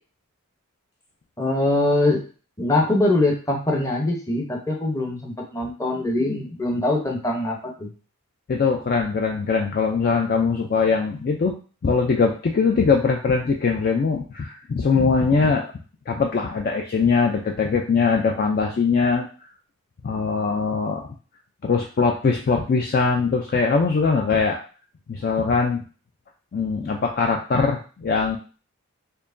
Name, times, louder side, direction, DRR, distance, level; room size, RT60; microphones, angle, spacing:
voice 1, 1.4-2.2 2.6-7.9, left 2 dB, 15° left, 0 dB, 0.7 m, -23 dB
voice 2, 8.5-11.5 11.8-15.7 16.1-19.3 20.0-21.1 21.6-24.6 25.1-25.8 26.5-28.4, left 4 dB, 40° left, 2 dB, 0.3 m, -21 dB
4.4 x 2.9 x 2.5 m, 0.38 s
head